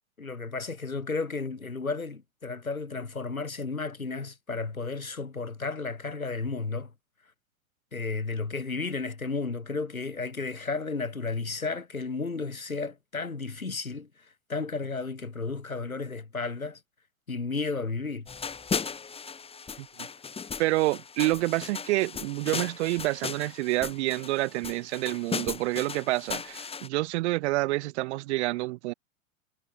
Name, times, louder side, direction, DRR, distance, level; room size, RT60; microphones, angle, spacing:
voice 1, 0.2-6.9 7.9-14.1 14.5-16.8 17.3-18.3, left 4 dB, 90° left, 4.0 m, -33 dB
sound 1, 18.3-26.9, left 5 dB, 15° left, 2.0 m, -37 dB
voice 2, 20.6-28.9, right 20 dB, 55° right, 6.9 m, -28 dB
figure-of-eight pair, 100°, 41 cm